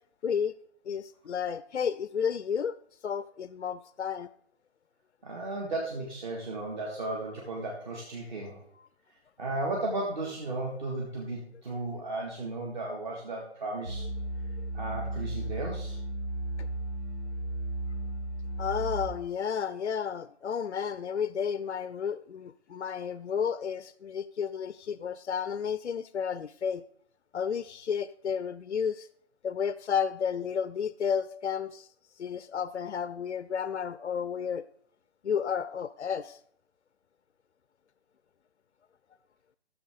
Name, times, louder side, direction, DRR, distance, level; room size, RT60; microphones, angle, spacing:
voice 1, 0.2-0.6 0.9-2.8 3.0-4.3 14.0-14.1 14.6-14.7 16.6-16.7 18.6-26.8 27.3-29.1 29.4-31.9 32.2-34.6 35.2-36.4, left 7 dB, 80° left, 15 dB, 0.5 m, -32 dB
voice 2, 5.2-8.6 9.4-14.1 14.7-16.0, right 2 dB, 40° right, -2 dB, 2.0 m, -35 dB
sound 1, 13.8-19.1, right 1 dB, 90° right, 3.3 m, -34 dB
14.0 x 6.9 x 3.7 m, 0.66 s
figure-of-eight pair, 145°, 34 cm